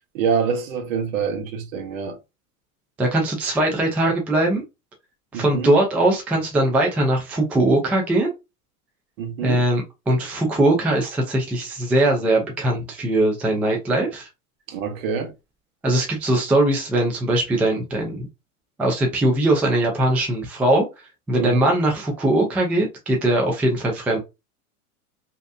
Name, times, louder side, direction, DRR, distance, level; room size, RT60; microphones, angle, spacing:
voice 1, 0.1-2.2 5.3-5.7 9.2-9.6 14.7-15.3 21.4-21.7, right 6 dB, 60° right, 1.0 m, -26 dB
voice 2, 3.0-4.6 5.3-8.3 9.4-14.3 15.8-18.3 18.8-20.8 21.3-24.2, right 1 dB, 5° right, 0.3 m, -20 dB
3.0 x 2.8 x 2.6 m
hypercardioid pair, 115°, 45 cm